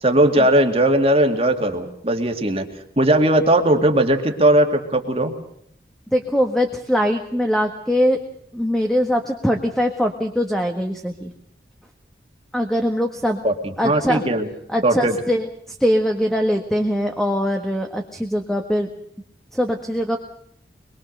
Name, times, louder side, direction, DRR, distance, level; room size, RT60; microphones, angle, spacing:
voice 1, 0.0-2.7 3.0-5.3 13.4-14.5 14.8-15.2, right 1 dB, 35° right, 4 dB, 2.3 m, -18 dB
voice 2, 6.1-8.2 8.5-11.3 12.5-13.4 13.8-14.2 14.7-18.9 19.5-20.2, equal, ahead, 4 dB, 1.5 m, -22 dB
25.0 x 22.5 x 6.7 m, 0.67 s
head